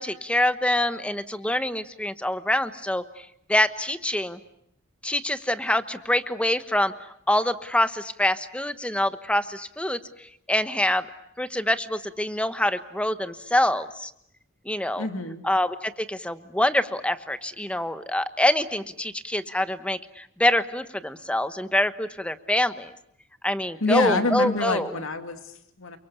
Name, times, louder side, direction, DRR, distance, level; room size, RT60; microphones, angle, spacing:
voice 1, 0.0-3.0 3.5-4.4 5.0-6.9 7.3-11.1 11.4-14.1 14.6-15.1 15.4-22.9 23.4-24.9, left 1 dB, 5° left, 11 dB, 1.1 m, -25 dB
voice 2, 15.0-15.4 23.8-26.0, left 2 dB, 75° left, 7 dB, 2.5 m, -26 dB
29.5 x 23.5 x 8.3 m, 0.72 s
head